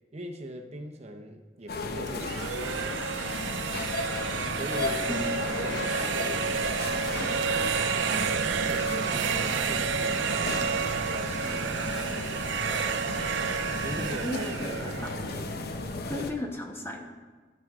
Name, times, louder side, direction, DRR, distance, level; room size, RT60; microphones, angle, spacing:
voice 1, 0.1-2.9 4.5-7.6 7.9-12.5 13.8-14.9 16.1-16.3, right 1 dB, 35° right, 3 dB, 0.8 m, -42 dB
sound 1, 1.7-16.3, left 2 dB, 60° left, 0.8 m, -34 dB
sound 2, 2.1-15.9, right 6 dB, 90° right, 0.5 m, -30 dB
voice 2, 14.0-15.7 16.1-17.0, left 1 dB, 15° left, 2 dB, 1.1 m, -36 dB
16.5 x 6.1 x 3.7 m, 1.4 s
head